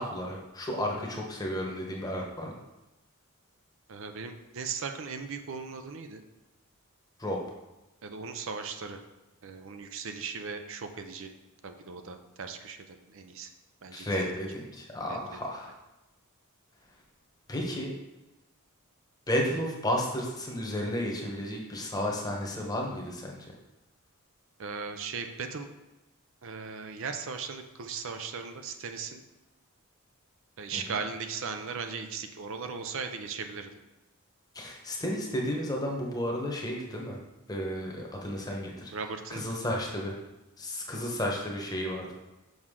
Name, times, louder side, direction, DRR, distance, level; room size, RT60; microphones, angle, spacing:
voice 1, 0.0-2.6 7.2-7.4 13.9-15.8 17.5-17.9 19.3-23.5 30.7-30.8 34.5-37.2 37.5-38.9 39.3-40.1 40.6-42.2, equal, 15° left, -1 dB, 1.0 m, -32 dB
voice 2, 3.9-6.2 8.0-9.0 9.4-11.3 11.6-13.5 13.8-14.3 15.1-15.4 24.6-25.7 26.4-29.2 30.6-33.8 38.9-39.4, right 5 dB, 60° right, 6 dB, 0.5 m, -38 dB
6.3 x 6.0 x 3.7 m, 1.0 s
head